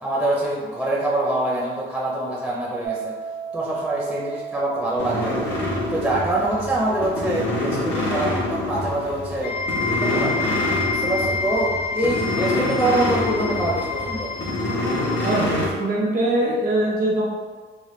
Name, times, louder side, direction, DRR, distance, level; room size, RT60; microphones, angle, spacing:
voice 1, 0.0-3.1 3.5-5.5 5.9-8.4 8.7-9.5 10.0-10.3 10.9-14.3, right 1 dB, 5° right, -5 dB, 0.6 m, -24 dB
sound 1, 2.8-13.8, right 7 dB, 80° right, 0.7 m, -38 dB
sound 2, 5.0-15.7, left 1 dB, 65° left, 0.9 m, -26 dB
sound 3, 9.4-15.5, left 4 dB, 50° left, 0.5 m, -28 dB
voice 2, 15.2-17.2, right 1 dB, 45° right, -3 dB, 0.7 m, -22 dB
3.4 x 2.1 x 3.1 m, 1.5 s
cardioid pair, 90°, 20 cm